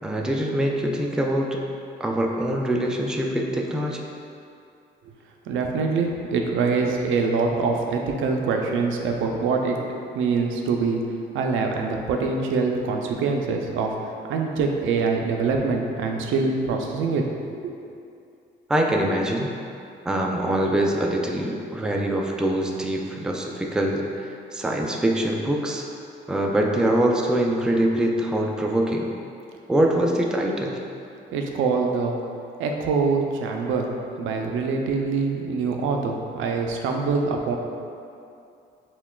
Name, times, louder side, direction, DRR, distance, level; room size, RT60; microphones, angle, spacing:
voice 1, 0.0-1.6 2.0-4.0 18.7-19.5 20.1-25.9 26.3-29.1 29.7-30.8, right 1 dB, 5° right, 0 dB, 0.3 m, -24 dB
voice 2, 5.5-9.8 10.1-11.0 11.3-17.3 17.6-17.8 31.3-32.2 32.6-33.9 34.2-37.6, right 4 dB, 85° right, 2 dB, 0.4 m, -24 dB
5.6 x 2.2 x 2.3 m, 2.5 s
cardioid pair, 90°, 20 cm